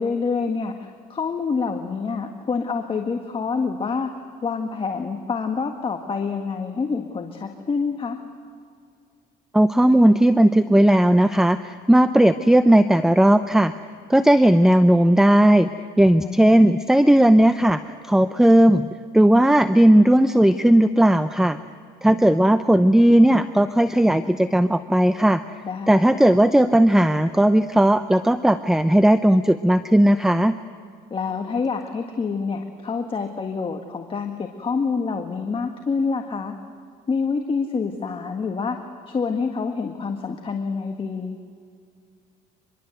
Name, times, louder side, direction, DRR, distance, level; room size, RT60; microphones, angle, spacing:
voice 1, 0.0-4.1 4.4-8.2 16.2-16.8 25.6-26.2 31.1-36.6 37.1-41.4, left 5 dB, 30° left, 4 dB, 1.7 m, -27 dB
voice 2, 9.5-13.7 14.1-15.7 16.0-18.9 19.1-21.6 22.0-25.4 25.9-30.5, right 1 dB, 5° right, 11 dB, 0.7 m, -16 dB
25.5 x 22.0 x 8.0 m, 2.2 s
cardioid pair, 110°, 17 cm